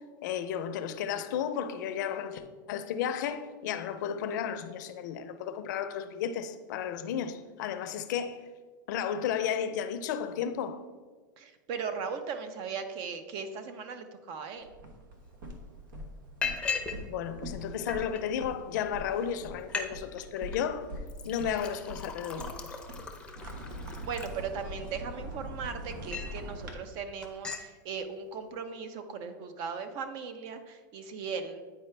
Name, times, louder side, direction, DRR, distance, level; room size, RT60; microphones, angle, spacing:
voice 1, 0.2-8.4 8.9-10.8 17.1-20.9 21.2-22.5, left 8 dB, 65° left, 0.6 m, -33 dB
voice 2, 11.4-14.7 24.0-31.6, right 6 dB, 45° right, 0.7 m, -38 dB
sound 1, 14.6-26.7, equal, 75° right, 1.2 m, -43 dB
Liquid, 15.2-15.3 15.7-15.9 16.4-17.0 17.3-18.2 18.9-19.0 19.3-19.4 19.6-19.9 20.2-20.6 21.1-24.9 25.4-26.4 26.8-27.0 27.2-27.7, left 5 dB, 10° left, 0.6 m, -38 dB
9.2 x 4.6 x 3.3 m
supercardioid pair, 135°, 11 cm